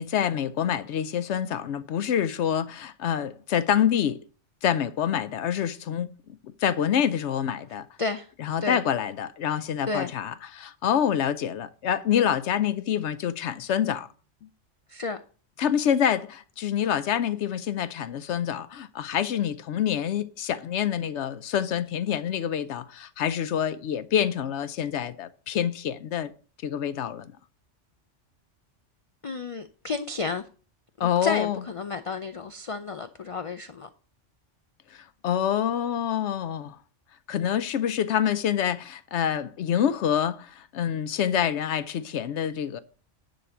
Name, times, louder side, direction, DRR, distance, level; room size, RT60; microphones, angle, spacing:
voice 1, 0.0-4.2 4.6-6.1 6.6-7.9 8.4-14.1 15.6-26.3 26.6-27.3 31.0-31.6 34.9-36.8 37.3-42.8, left 9 dB, 70° left, 0.9 m, -26 dB
voice 2, 8.0-8.3 8.6-8.8 9.9-10.1 14.9-15.2 29.2-30.5 31.0-33.9, left 4 dB, 55° left, 0.3 m, -32 dB
10.5 x 4.0 x 7.1 m
omnidirectional pair, 1.3 m